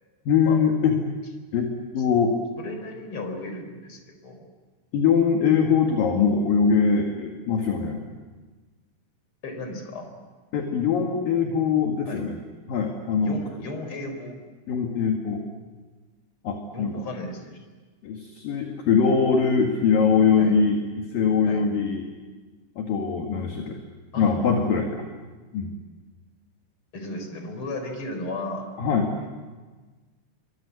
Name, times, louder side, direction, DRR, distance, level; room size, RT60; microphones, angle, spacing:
voice 1, 0.3-1.0 1.5-2.4 4.9-8.0 10.5-12.4 12.7-13.4 14.7-15.4 16.4-17.0 18.0-22.0 22.8-23.8 24.2-25.0 25.5-25.7 28.8-29.1, left 6 dB, 55° left, 2 dB, 3.1 m, -22 dB
voice 2, 2.6-4.4 9.4-10.1 12.1-12.2 13.2-14.4 16.7-17.6 20.4-20.5 21.5-21.6 24.1-24.8 26.9-28.7, left 2 dB, 30° left, 6 dB, 4.3 m, -35 dB
28.0 x 24.5 x 8.5 m, 1.4 s
omnidirectional pair, 5.8 m